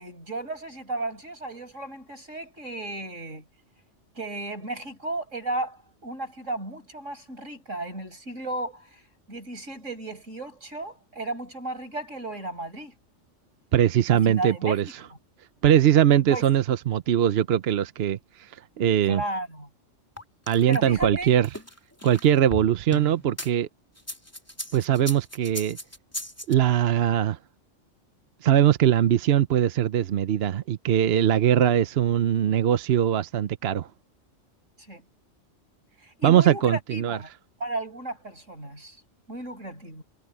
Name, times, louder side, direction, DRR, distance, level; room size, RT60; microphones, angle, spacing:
voice 1, 0.0-3.4 4.2-9.0 9.3-12.9 14.1-14.8 16.3-16.4 19.0-19.7 20.7-21.3 34.9-35.0 36.0-37.3 37.6-39.0 39.3-40.0, right 2 dB, 85° right, 8.1 m, -34 dB
voice 2, 13.7-14.8 15.6-18.2 18.8-19.2 20.5-21.5 22.0-23.7 24.7-25.8 26.5-27.4 28.4-33.9 36.2-37.2, right 10 dB, 60° right, 0.9 m, -21 dB
sound 1, 20.2-23.5 24.0-26.5, left 1 dB, 10° left, 3.2 m, -37 dB
omnidirectional pair, 1.3 m